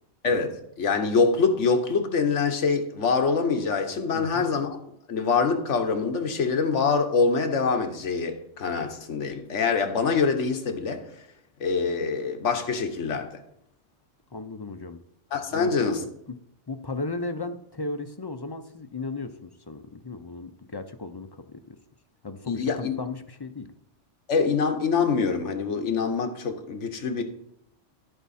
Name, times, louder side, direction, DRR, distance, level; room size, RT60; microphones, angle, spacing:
voice 1, 0.2-4.8 5.1-11.0 11.6-13.3 15.3-16.0 22.5-23.0 24.3-27.2, left 5 dB, 75° left, 1.4 m, -25 dB
voice 2, 4.1-4.4 14.3-15.0 15.5-16.4 16.7-21.8 22.2-23.7, left 3 dB, 35° left, 0.3 m, -35 dB
13.5 x 4.7 x 4.2 m
omnidirectional pair, 1.3 m